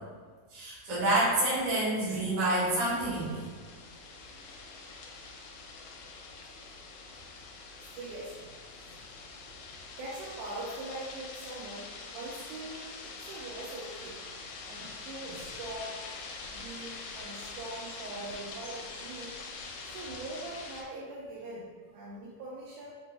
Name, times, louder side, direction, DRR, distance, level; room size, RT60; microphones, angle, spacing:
voice 1, 0.5-3.4, right 1 dB, 55° right, -8 dB, 1.8 m, -28 dB
sound 1, 2.5-20.8, left 4 dB, 85° left, 2.1 m, -45 dB
voice 2, 4.3-4.8 7.8-8.5 8.9-9.0 10.0-14.2 14.7-16.0 16.5-19.3 19.8-22.9, right 2 dB, 80° right, -5 dB, 1.9 m, -42 dB
4.9 x 2.1 x 3.3 m, 1.5 s
omnidirectional pair, 3.7 m